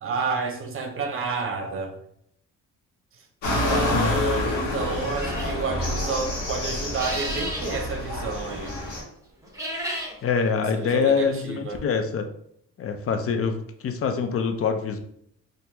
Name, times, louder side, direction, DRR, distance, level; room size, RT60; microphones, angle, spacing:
voice 1, 0.0-1.9 3.4-8.7 10.7-11.8, right 4 dB, 45° right, 4 dB, 0.8 m, -30 dB
sound 1, 3.4-9.0, left 2 dB, 80° left, 1.3 m, -27 dB
voice 2, 3.8-4.2 10.2-12.3 12.8-15.0, left 5 dB, 50° left, 6 dB, 0.6 m, -25 dB
sound 2, 5.2-5.6 6.8-7.7 9.4-10.1, right 1 dB, 10° right, 1.1 m, -32 dB
4.3 x 2.6 x 2.7 m, 0.70 s
cardioid pair, 90°, 30 cm